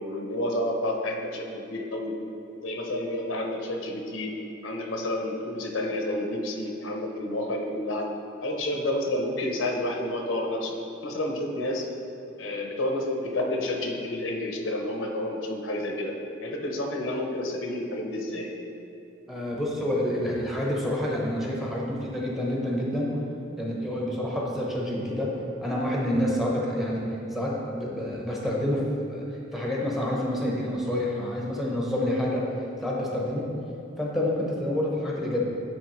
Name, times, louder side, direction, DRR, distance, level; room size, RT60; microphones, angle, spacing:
voice 1, 0.0-2.1 2.6-4.3 4.6-8.1 8.4-11.9 12.4-16.1 16.4-18.5, left 1 dB, 75° left, 2 dB, 0.8 m, -30 dB
voice 2, 19.3-23.1 23.6-25.3 25.6-27.0 27.3-28.8 29.1-29.2 29.5-32.5 32.8-33.5 34.0-35.4, left 1 dB, ahead, -3 dB, 0.8 m, -28 dB
8.8 x 4.3 x 3.1 m, 2.8 s
head